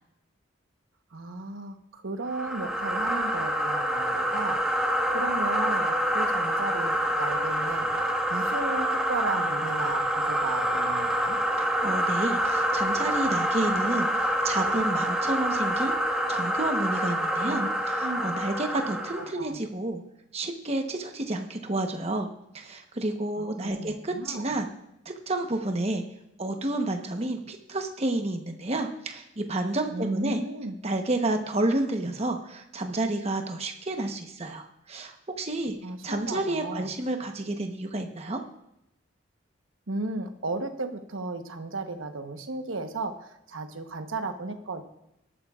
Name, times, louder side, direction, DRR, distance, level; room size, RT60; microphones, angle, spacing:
voice 1, 1.1-4.8 5.1-11.4 17.4-17.7 18.0-18.3 19.1-19.6 23.4-24.5 29.9-30.7 35.8-36.9 39.9-44.8, right 2 dB, 85° right, 7 dB, 1.1 m, -35 dB
sound 1, 2.3-19.3, right 1 dB, 5° right, 1.3 m, -27 dB
voice 2, 11.6-15.9 16.3-20.0 20.3-22.3 22.5-24.7 25.0-26.0 26.4-30.4 30.8-35.8 36.0-38.4, right 2 dB, 30° right, 4 dB, 1.0 m, -30 dB
18.5 x 12.5 x 2.4 m, 0.82 s
head